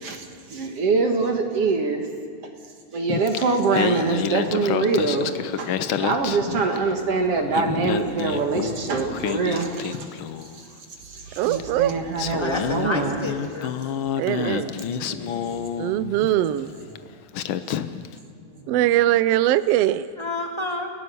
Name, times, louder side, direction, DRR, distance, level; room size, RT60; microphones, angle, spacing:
voice 1, 0.0-2.1 2.4-2.5 2.9-10.1 10.4-10.7 11.0-13.2 15.1-15.2, right 4 dB, 55° right, 4 dB, 2.5 m, -24 dB
Singing, 3.1-7.0 7.4-10.6 11.6-11.7 12.2-16.4 17.0-17.1 17.3-18.1, left 9 dB, 75° left, 1.2 m, -29 dB
voice 2, 11.4-11.9 14.2-14.7 15.8-16.7 18.7-20.1, right 13 dB, 75° right, 15 dB, 1.5 m, -21 dB
voice 3, 12.4-13.7 14.4-14.8 20.2-20.9, left 2 dB, 10° left, 2 dB, 1.6 m, -30 dB
voice 4, 14.5-17.2 18.1-18.9, equal, 40° left, -2 dB, 6.6 m, -47 dB
29.5 x 17.0 x 6.9 m, 2.2 s
omnidirectional pair, 3.3 m